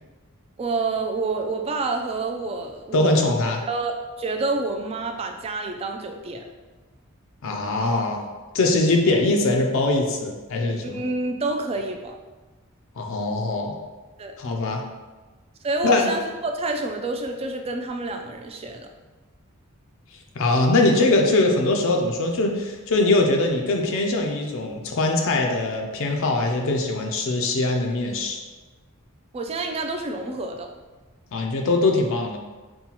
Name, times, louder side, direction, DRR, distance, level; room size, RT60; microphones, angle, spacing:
voice 1, 0.6-3.3 3.7-6.4 10.8-12.2 14.2-14.3 15.6-18.9 29.3-30.7, right 3 dB, 30° right, 4 dB, 0.3 m, -28 dB
voice 2, 2.9-3.6 7.4-8.2 8.5-11.0 13.0-13.7 14.4-14.8 15.8-16.1 20.4-28.4 31.3-32.4, left 2 dB, 65° left, 2 dB, 0.4 m, -22 dB
5.5 x 2.2 x 2.9 m, 1.3 s
head